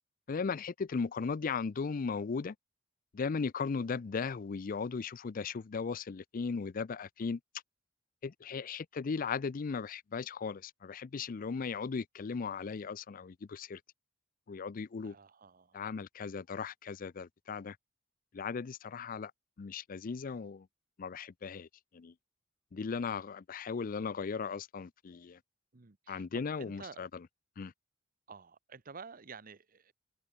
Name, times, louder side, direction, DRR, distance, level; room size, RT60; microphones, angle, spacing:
voice 1, 0.3-2.5 3.1-7.4 8.2-13.8 14.5-15.1 15.7-17.8 18.3-19.3 19.6-20.7 21.0-21.7 21.9-22.1 22.7-25.4 26.1-27.1 27.6-27.7, left 5 dB, 45° left, 0.4 m, -37 dB
voice 2, 15.0-15.8 25.7-27.0 28.3-29.9, right 5 dB, 50° right, 1.0 m, -51 dB
head